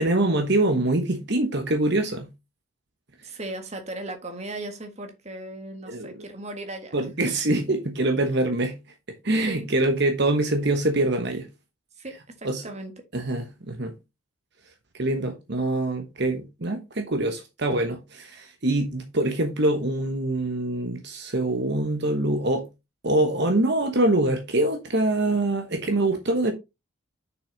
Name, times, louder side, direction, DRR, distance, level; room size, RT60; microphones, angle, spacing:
voice 1, 0.0-2.3 5.9-6.1 6.9-8.8 9.2-11.5 12.4-12.6 13.1-13.9 14.9-22.7 23.0-26.5, right 2 dB, 55° right, 1.2 m, -24 dB
voice 2, 3.2-7.3 9.4-9.7 12.0-13.0, right 2 dB, 30° right, 1.6 m, -37 dB
6.9 x 6.2 x 4.0 m
head